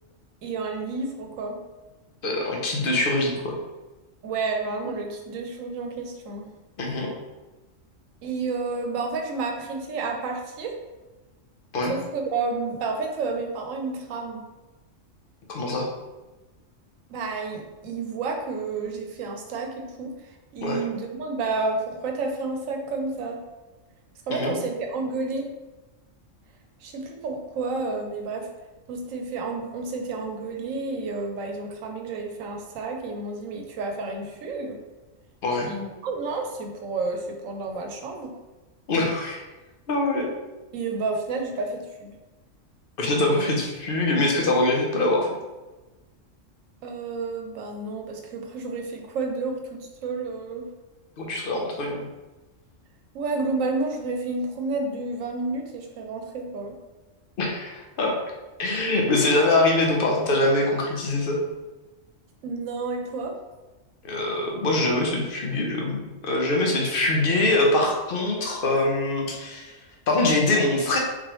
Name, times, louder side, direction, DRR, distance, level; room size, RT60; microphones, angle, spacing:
voice 1, 0.4-1.6 4.2-6.5 8.2-10.8 11.9-14.4 17.1-20.1 20.5-23.4 24.3-25.5 26.8-28.5 28.9-34.8 35.6-38.3 40.7-42.1 46.8-50.7 53.1-56.7 62.4-63.4, right 3 dB, 90° right, 3 dB, 1.0 m, -30 dB
voice 2, 2.2-3.5 6.8-7.1 11.7-11.9 15.5-15.9 20.6-20.8 24.3-24.5 35.4-35.7 38.9-39.4 39.9-40.3 43.0-45.3 51.2-52.1 57.4-58.2 58.6-61.4 64.0-69.7 70.1-71.0, left 2 dB, 50° left, 0 dB, 0.9 m, -23 dB
3.9 x 3.1 x 3.0 m, 1.2 s
omnidirectional pair, 1.3 m